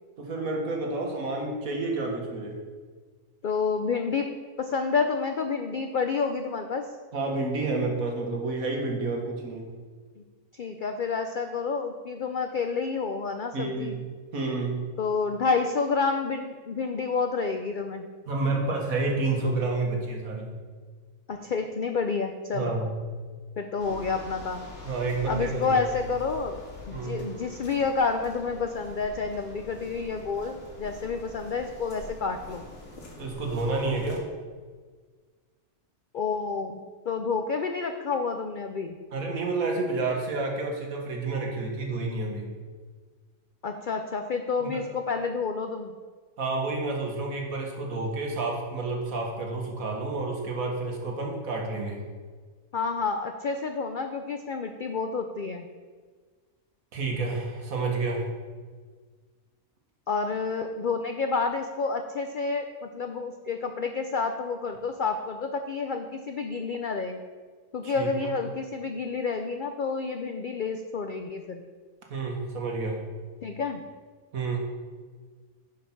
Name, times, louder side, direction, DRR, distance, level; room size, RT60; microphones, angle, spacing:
voice 1, 0.2-2.6 7.1-9.7 13.5-14.1 14.3-14.9 18.3-20.6 22.5-23.0 23.8-23.9 24.8-25.8 26.9-27.2 33.2-34.2 39.1-42.5 44.6-44.8 46.4-52.1 56.9-58.3 67.8-68.3 72.1-73.0 74.3-74.6, right 3 dB, 70° right, 0 dB, 1.9 m, -30 dB
voice 2, 3.4-4.3 4.6-6.9 10.5-14.0 15.0-18.1 21.3-22.7 23.6-24.7 25.3-26.6 26.9-32.6 36.1-36.8 37.1-39.0 43.6-45.9 52.7-55.7 60.1-67.2 67.7-71.6 73.4-73.8, left 4 dB, 80° left, 6 dB, 0.4 m, -29 dB
sound 1, 23.8-34.2, left 3 dB, 55° left, 2.0 m, -45 dB
9.9 x 5.1 x 5.8 m, 1.5 s
omnidirectional pair, 1.5 m